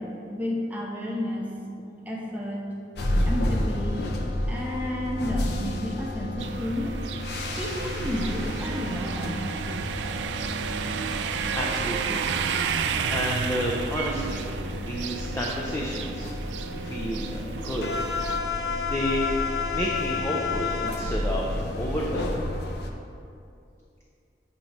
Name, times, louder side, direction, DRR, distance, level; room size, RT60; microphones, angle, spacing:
voice 1, 0.0-1.5 2.1-2.6 3.3-4.1 4.4-7.0 7.6-9.4, left 1 dB, 10° right, -3 dB, 0.7 m, -31 dB
sound 1, 3.0-22.9, left 2 dB, 60° left, 0.6 m, -31 dB
sound 2, 6.4-18.4, right 6 dB, 80° right, 0.3 m, -32 dB
sound 3, 8.2-13.6, right 1 dB, 90° left, 1.3 m, -46 dB
voice 2, 11.1-12.2 13.1-16.3 16.8-18.0 18.7-19.3 19.7-22.3, equal, 15° left, -2 dB, 0.4 m, -31 dB
7.5 x 2.9 x 5.2 m, 2.5 s
head